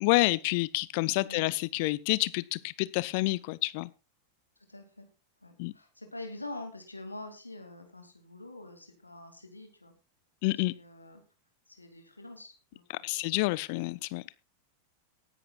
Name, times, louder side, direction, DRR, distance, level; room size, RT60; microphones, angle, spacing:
voice 1, 0.0-3.9 5.6-5.7 10.4-10.7 12.9-14.2, left 22 dB, 45° left, 0.6 m, -28 dB
voice 2, 4.7-5.1 5.4-9.9 10.7-11.2 11.7-13.4, left 2 dB, 85° left, 2.4 m, -45 dB
19.0 x 11.0 x 2.4 m
figure-of-eight pair, 90°, 0 cm